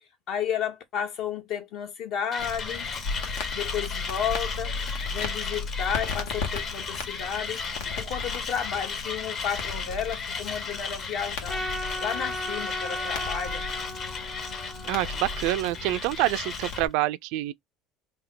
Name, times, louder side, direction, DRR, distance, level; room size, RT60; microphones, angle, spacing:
voice 1, 0.3-2.9 3.5-7.6 8.0-11.6 12.0-13.6, left 8 dB, 60° left, 1.4 m, -32 dB
Mechanisms, 2.3-16.9, left 5 dB, 40° left, 1.3 m, -35 dB
Crackle, 2.4-16.9, left 4 dB, 80° left, 1.5 m, -36 dB
Trumpet, 11.5-15.9, left 1 dB, 10° left, 0.9 m, -36 dB
voice 2, 14.8-17.5, right 16 dB, 70° right, 0.3 m, -27 dB
3.5 x 2.7 x 3.8 m
supercardioid pair, 120°, 0 cm